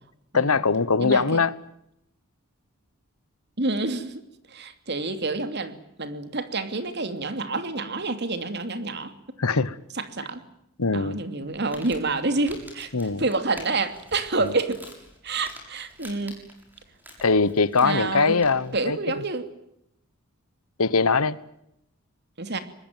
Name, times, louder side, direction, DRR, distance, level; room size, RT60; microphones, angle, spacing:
voice 1, 0.3-1.5 9.4-9.8 10.8-11.2 12.9-13.2 17.2-19.0 20.8-21.4, left 4 dB, 85° left, 1.2 m, -21 dB
voice 2, 1.0-1.4 3.6-4.2 4.5-9.1 9.9-10.4 10.9-12.9 13.2-14.8 15.2-16.4 17.8-18.4 18.7-19.5 22.4-22.6, right 3 dB, 50° right, 2.8 m, -28 dB
Crumpling crinkling, 11.4-18.8, equal, 10° right, 6.8 m, -48 dB
24.5 x 20.5 x 9.2 m
head